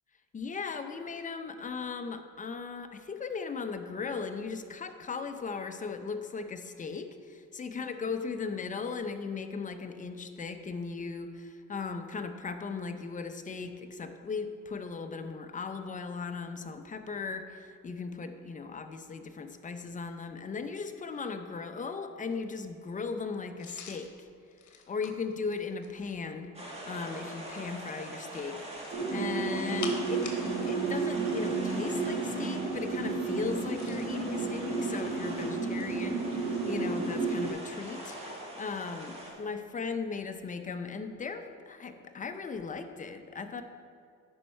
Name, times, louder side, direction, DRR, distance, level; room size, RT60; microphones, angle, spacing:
voice 1, 0.3-24.3 24.9-28.6 29.1-30.3 30.7-38.2 38.6-43.6, left 5 dB, 25° left, 7 dB, 0.6 m, -37 dB
sound 1, 23.6-26.2 28.7-30.8 31.1-31.3 33.5-34.2 35.0-36.1 38.0-38.2, left 6 dB, 70° left, 1.1 m, -46 dB
sound 2, 26.5-39.3, right 1 dB, 20° right, 1.9 m, -43 dB
sound 3, 28.9-37.5, right 4 dB, 50° right, 1.9 m, -32 dB
10.0 x 5.5 x 4.3 m, 2.3 s
cardioid pair, 90°, 30 cm